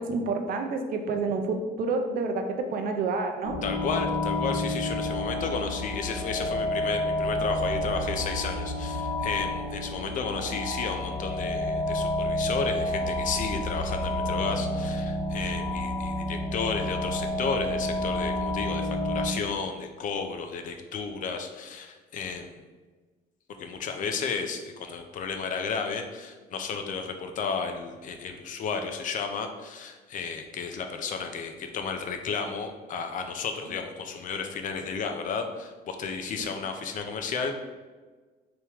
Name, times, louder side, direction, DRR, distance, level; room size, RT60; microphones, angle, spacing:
voice 1, 0.1-2.4 2.7-3.6, right 4 dB, 60° right, 5 dB, 0.5 m, -28 dB
sound 1, 3.4-19.3, left 1 dB, 80° left, 1.0 m, -30 dB
voice 2, 3.6-22.5 23.6-37.5, left 5 dB, 50° left, 5 dB, 0.4 m, -33 dB
3.4 x 3.0 x 2.9 m, 1.3 s
cardioid pair, 110°, 17 cm